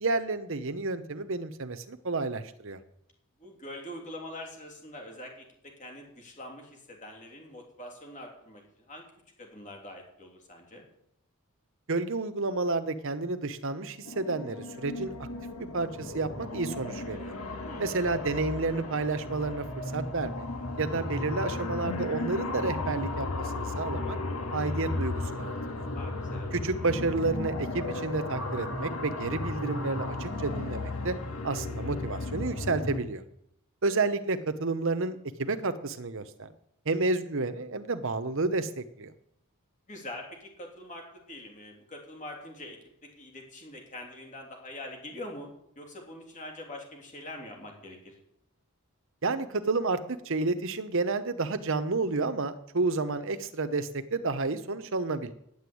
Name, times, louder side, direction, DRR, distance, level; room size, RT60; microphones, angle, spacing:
voice 1, 0.0-2.8 11.9-15.3 15.6-17.3 17.8-19.7 19.9-20.5 20.8-24.2 24.5-25.9 26.5-31.2 31.4-33.2 33.8-36.5 36.8-39.1 49.2-55.3, right 3 dB, 60° right, 11 dB, 1.0 m, -30 dB
voice 2, 3.4-9.1 9.4-10.8 17.6-17.9 25.9-26.5 39.9-45.5 45.7-48.1, left 1 dB, 35° left, 1 dB, 3.2 m, -44 dB
sound 1, 14.1-33.0, left 2 dB, 85° left, 1.8 m, -35 dB
10.5 x 8.0 x 8.5 m, 0.75 s
head